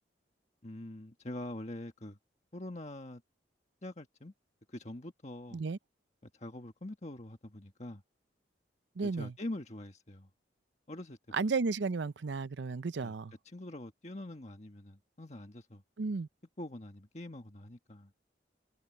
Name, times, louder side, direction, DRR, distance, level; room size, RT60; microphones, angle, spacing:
voice 1, 0.6-2.2 2.5-3.2 3.8-4.3 4.7-5.6 6.3-8.0 9.0-10.3 10.9-11.2 13.0-13.1 13.4-15.8 16.6-18.1, left 1 dB, 40° left, 1.5 m, -44 dB
voice 2, 9.0-9.3 11.3-13.3 16.0-16.3, right 4 dB, 75° right, 0.6 m, -33 dB
head